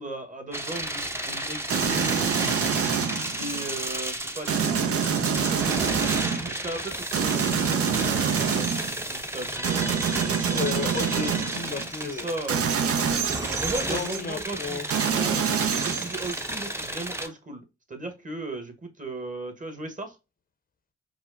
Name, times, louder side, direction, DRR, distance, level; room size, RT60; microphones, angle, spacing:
voice 1, 0.0-2.3 2.9-8.7 9.1-10.6 11.8-12.7 13.6-20.2, right 2 dB, 25° right, 1.3 m, -37 dB
sound 1, 0.5-17.3, right 1 dB, 10° right, 0.8 m, -33 dB
sound 2, 1.7-3.7 4.5-6.5 7.1-9.0 9.6-11.9 12.5-14.2 14.9-16.6, right 7 dB, 50° right, 0.7 m, -26 dB
voice 2, 10.5-12.3 13.2-13.3 13.9-14.9 15.3-15.5, left 5 dB, 30° left, 0.8 m, -33 dB
4.8 x 2.0 x 2.6 m
hypercardioid pair, 45°, 29 cm